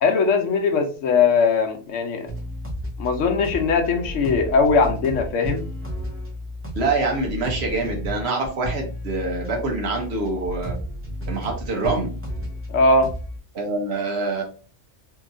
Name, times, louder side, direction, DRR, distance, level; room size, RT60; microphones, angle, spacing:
voice 1, 0.0-2.3 3.0-5.7 12.7-13.1, left 4 dB, 80° left, 4 dB, 1.0 m, -20 dB
sound 1, 2.3-13.4, equal, 15° right, 0.7 m, -33 dB
voice 2, 6.7-10.7 11.3-12.1 13.5-14.4, right 3 dB, 60° right, 2 dB, 1.0 m, -25 dB
3.0 x 2.7 x 2.5 m, 0.38 s
omnidirectional pair, 1.3 m